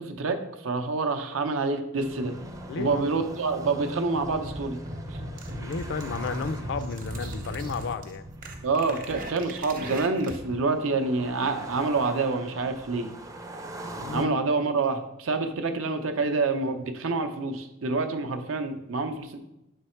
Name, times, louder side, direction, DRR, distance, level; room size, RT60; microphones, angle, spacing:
voice 1, 0.0-2.4 2.8-4.8 8.6-13.1 14.1-19.4, right 3 dB, 85° right, 7 dB, 0.7 m, -27 dB
sound 1, 2.0-14.3, right 1 dB, 15° right, 0.4 m, -42 dB
voice 2, 2.7-3.0 5.5-8.2 14.0-14.3, left 5 dB, 60° left, 12 dB, 0.4 m, -33 dB
sound 2, 4.1-10.5, right 1 dB, 45° right, 0.8 m, -38 dB
6.5 x 3.3 x 4.4 m, 0.89 s
head